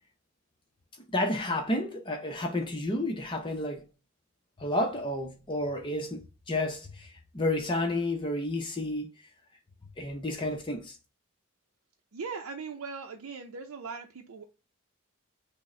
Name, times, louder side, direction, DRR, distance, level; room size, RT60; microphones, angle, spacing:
voice 1, 1.1-3.9 4.6-9.1 10.0-11.0, left 1 dB, 25° left, 0.6 m, -31 dB
voice 2, 12.1-14.4, right 5 dB, 85° right, 0.5 m, -39 dB
6.0 x 2.1 x 3.1 m
head